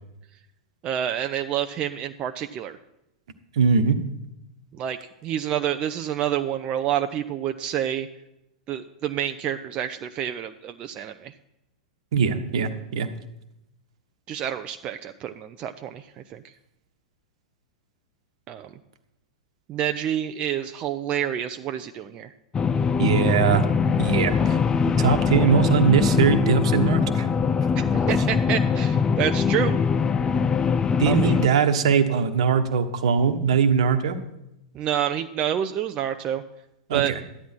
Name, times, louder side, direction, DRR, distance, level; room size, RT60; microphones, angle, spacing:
voice 1, 0.8-2.8 4.7-8.1 8.7-11.3 14.3-16.4 18.5-18.7 19.7-22.3 27.8-29.8 31.1-31.4 34.7-36.4 36.9-37.1, right 10 dB, 35° right, 7 dB, 0.6 m, -28 dB
voice 2, 3.5-4.0 12.1-13.1 23.0-23.6 24.0-24.6 24.9-27.3 31.0-34.2 36.9-37.1, right 6 dB, 65° right, 9 dB, 1.2 m, -21 dB
sound 1, 22.5-31.5, left 6 dB, 20° left, 0.5 m, -22 dB
13.5 x 10.5 x 4.5 m, 0.88 s
figure-of-eight pair, 95°, 3 cm